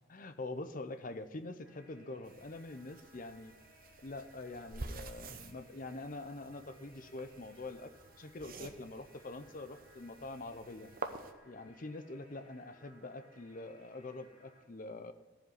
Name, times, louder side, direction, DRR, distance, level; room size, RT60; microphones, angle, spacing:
voice 1, 0.1-3.5 4.0-7.9 8.2-10.9 11.4-15.1, left 2 dB, 40° left, 10 dB, 0.6 m, -45 dB
sound 1, 1.6-14.6, equal, 5° right, 2.9 m, -63 dB
sound 2, 2.2-11.3, right 3 dB, 40° right, 0.8 m, -49 dB
14.5 x 5.1 x 9.2 m, 1.2 s
head